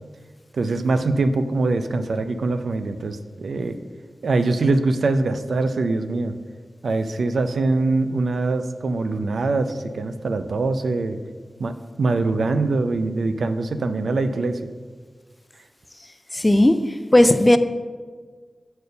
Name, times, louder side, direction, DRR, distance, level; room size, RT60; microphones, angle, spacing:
voice 1, 0.5-3.8 4.2-6.3 6.8-11.2 11.6-14.6, right 3 dB, 85° right, 9 dB, 0.4 m, -23 dB
voice 2, 16.3-17.6, left 1 dB, 20° left, 11 dB, 0.4 m, -16 dB
6.8 x 4.3 x 6.5 m, 1.5 s
wide cardioid pair, 100°, 0 cm